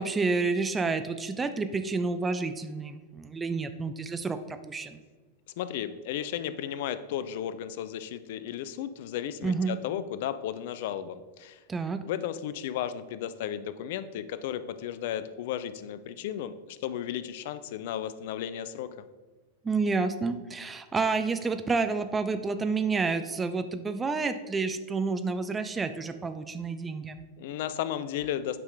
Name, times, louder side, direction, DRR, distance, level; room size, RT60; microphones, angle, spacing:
voice 1, 0.0-5.0 9.4-9.8 11.7-12.0 19.6-27.2, right 4 dB, 15° right, 9 dB, 0.5 m, -29 dB
voice 2, 5.6-11.6 12.1-18.9 27.4-28.6, left 10 dB, 50° left, 14 dB, 0.4 m, -34 dB
9.3 x 5.2 x 3.9 m, 1.4 s
figure-of-eight pair, 90°, 0 cm